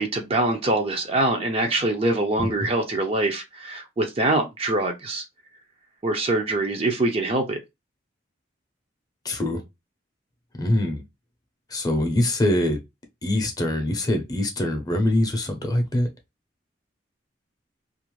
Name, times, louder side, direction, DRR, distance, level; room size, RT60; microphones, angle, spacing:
voice 1, 0.0-5.2 6.0-7.6, right 2 dB, 30° right, 0.4 m, -24 dB
voice 2, 9.2-9.6 10.5-11.0 11.7-12.8 13.2-16.1, left 1 dB, 20° left, 0.6 m, -23 dB
2.4 x 2.0 x 3.0 m
head